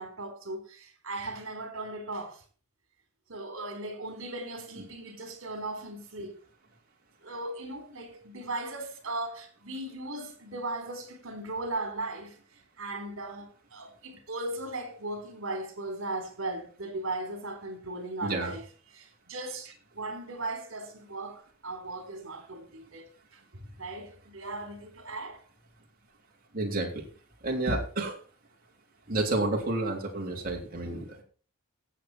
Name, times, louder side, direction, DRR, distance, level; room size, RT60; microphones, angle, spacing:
voice 1, 0.0-2.4 3.3-6.4 7.2-12.4 12.8-18.6 18.9-23.4 23.8-25.4, right 2 dB, 65° right, 3.8 m, -37 dB
voice 2, 18.2-18.5 26.5-27.1 27.4-28.2 29.1-31.2, right 2 dB, 40° right, 3.5 m, -30 dB
15.5 x 8.1 x 4.4 m
head